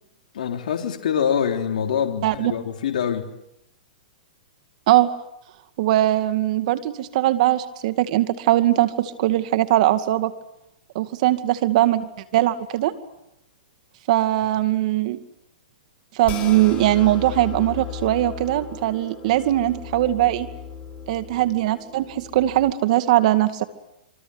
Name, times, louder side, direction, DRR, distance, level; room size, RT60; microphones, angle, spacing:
voice 1, 0.3-3.3, left 8 dB, 70° left, 3 dB, 3.6 m, -24 dB
voice 2, 5.8-10.3 10.9-12.9 14.1-15.2 16.1-20.5 21.1-23.6, right 14 dB, 50° right, 10 dB, 2.4 m, -20 dB
sound 1, 16.2-22.7, left 6 dB, 25° left, 6.5 m, -36 dB
26.5 x 24.5 x 8.1 m, 0.84 s
hypercardioid pair, 140°, 5 cm